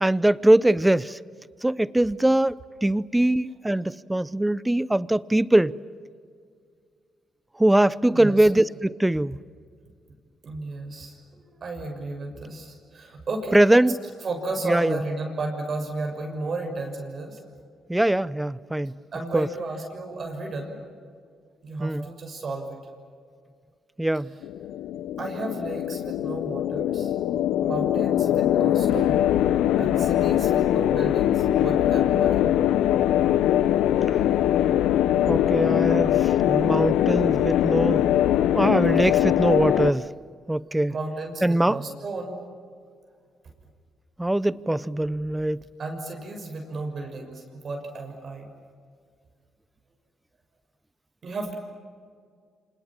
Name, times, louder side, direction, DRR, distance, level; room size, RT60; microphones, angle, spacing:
voice 1, 0.0-1.2 1.6-5.8 7.6-9.4 13.5-14.0 14.6-15.0 17.9-19.0 19.3-19.5 21.8-22.1 24.0-24.3 35.3-38.1 38.5-40.0 40.5-40.9 41.4-41.8 44.2-45.6, right 1 dB, 10° right, 0.7 m, -22 dB
voice 2, 8.1-8.5 10.4-13.8 14.2-17.4 19.1-20.8 21.6-22.8 25.2-27.1 27.6-29.3 29.8-32.5 40.9-42.4 45.8-48.5 51.2-51.5, right 2 dB, 50° right, 6.4 m, -33 dB
sound 1, 24.4-39.9, left 11 dB, 90° left, 0.8 m, -22 dB
29.0 x 26.5 x 7.5 m
cardioid pair, 90°, 0 cm